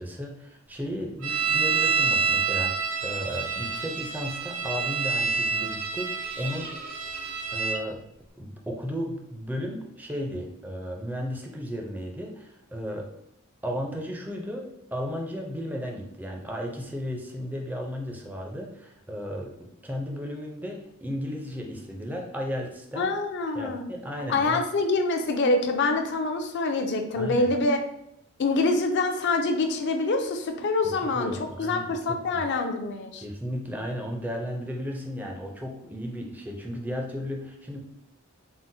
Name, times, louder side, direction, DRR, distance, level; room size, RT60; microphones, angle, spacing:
voice 1, 0.0-6.8 7.5-8.0 8.4-13.1 13.6-23.1 23.5-24.6 27.2-27.5 31.0-32.4 33.2-37.8, equal, 10° right, 1 dB, 0.4 m, -34 dB
sound 1, 1.2-7.8, right 5 dB, 85° right, 0.6 m, -27 dB
voice 2, 23.0-23.8 24.3-27.8 28.4-31.3 31.6-33.2, left 3 dB, 55° left, 5 dB, 0.4 m, -25 dB
3.7 x 2.0 x 2.6 m, 0.78 s
head